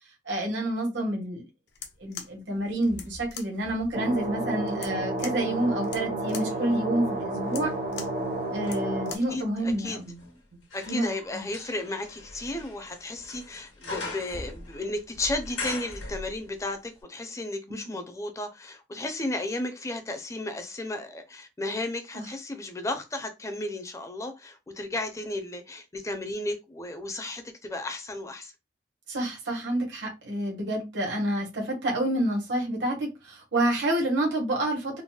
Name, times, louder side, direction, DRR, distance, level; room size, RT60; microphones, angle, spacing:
voice 1, 0.2-1.4 2.0-7.7 8.5-10.2 10.8-11.4 17.7-18.0 22.1-22.2 29.1-35.0, right 1 dB, 80° right, 1.2 m, -28 dB
sound 1, 1.7-9.4, left 7 dB, 65° left, 0.5 m, -44 dB
sound 2, 2.6-4.8 5.4-16.7 17.0-17.1, left 2 dB, 90° left, 1.3 m, -42 dB
sound 3, 3.9-9.2, right 2 dB, 45° right, 0.6 m, -31 dB
voice 2, 9.3-10.0 10.7-28.5, left 2 dB, 15° left, 0.5 m, -34 dB
3.9 x 2.1 x 2.3 m
head